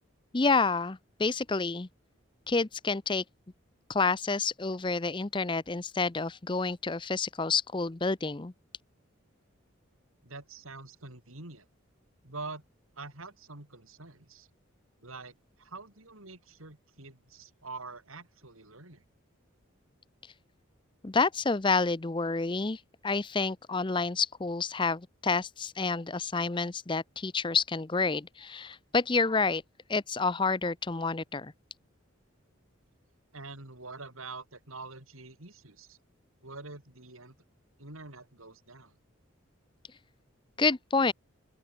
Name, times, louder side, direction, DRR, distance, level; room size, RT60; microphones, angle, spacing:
voice 1, 0.3-1.9 2.5-3.2 3.9-8.5 21.0-29.6 29.9-31.5 40.6-41.1, left 4 dB, 25° left, 0.6 m, -29 dB
voice 2, 10.2-11.7 12.2-12.6 13.0-14.5 15.0-19.1 33.3-36.0 36.4-37.4 37.8-39.0, right 3 dB, 85° right, 5.2 m, -45 dB
open air
head